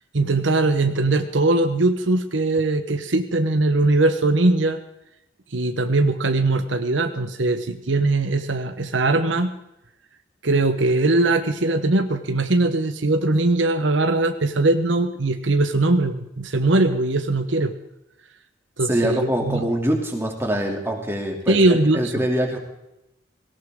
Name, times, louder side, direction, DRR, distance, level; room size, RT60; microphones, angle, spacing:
voice 1, 0.1-4.8 5.5-9.5 10.4-17.7 18.8-19.7 21.5-22.1, right 2 dB, 80° right, 7 dB, 1.1 m, -20 dB
voice 2, 18.8-22.6, right 1 dB, 15° right, 1 dB, 2.8 m, -24 dB
18.0 x 18.0 x 3.8 m, 0.88 s
head